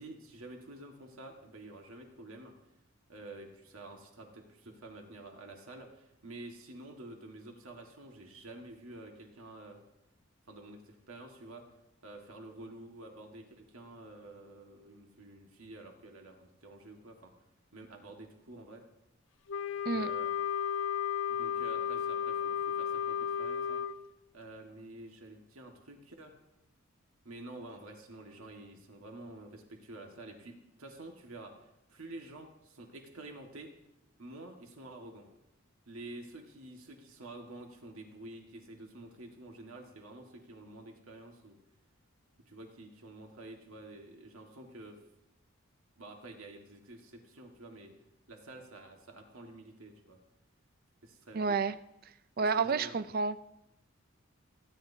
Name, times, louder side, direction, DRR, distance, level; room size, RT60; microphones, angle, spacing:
voice 1, 0.0-2.5 3.1-9.8 10.5-11.6 12.0-17.3 17.7-18.8 19.9-20.3 21.3-23.8 24.3-26.4 27.2-33.7 34.2-35.3 35.9-41.6 42.4-45.0 46.0-47.9 48.3-50.2 51.0-51.6 52.4-52.9, right 2 dB, 80° right, 2 dB, 1.7 m, -49 dB
Wind instrument woodwind instrument, 19.5-24.0, left 8 dB, 60° left, 0.5 m, -33 dB
voice 2, 51.3-51.7 52.4-53.4, right 4 dB, 45° right, 14 dB, 0.4 m, -30 dB
30.0 x 10.5 x 2.8 m, 0.85 s
head